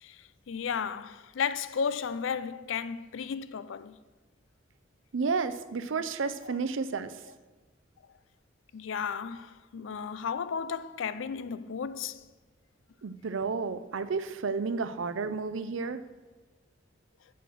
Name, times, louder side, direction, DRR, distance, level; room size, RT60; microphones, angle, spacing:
voice 1, 0.0-4.0 6.4-6.6 8.7-12.2 15.8-15.9, left 6 dB, 75° left, 0.4 m, -34 dB
voice 2, 5.1-7.1 13.0-16.0, right 4 dB, 75° right, 0.5 m, -31 dB
7.8 x 6.5 x 6.8 m
head